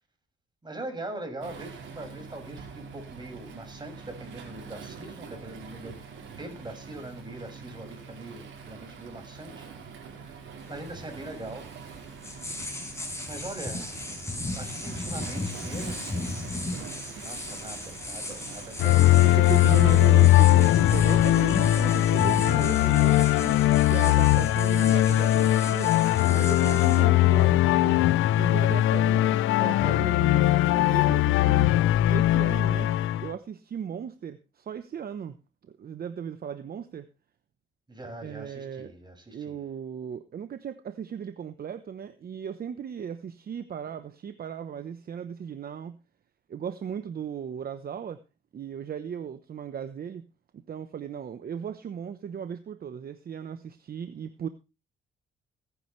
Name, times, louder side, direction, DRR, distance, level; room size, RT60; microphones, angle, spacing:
voice 1, 0.6-6.0 6.4-11.7 13.3-14.1 14.5-16.2 17.2-19.4 19.7-19.8 21.7-22.2 37.9-39.6, right 2 dB, 20° right, 4 dB, 6.2 m, -42 dB
Waves surf, 1.4-20.1, right 5 dB, 75° right, 4.7 m, -44 dB
sound 1, 10.6-29.0, left 2 dB, 15° left, 5.7 m, -37 dB
sound 2, 18.8-33.3, left 15 dB, 85° left, 0.6 m, -20 dB
voice 2, 18.8-23.6 23.9-25.9 26.3-28.0 28.3-31.8 32.1-32.9 33.2-35.4 35.6-37.1 38.2-38.9 39.3-46.0 46.5-48.2 48.5-50.3 50.5-54.5, right 7 dB, 50° right, 11 dB, 1.0 m, -36 dB
19.5 x 10.0 x 3.3 m, 0.28 s
cardioid pair, 90°, 20 cm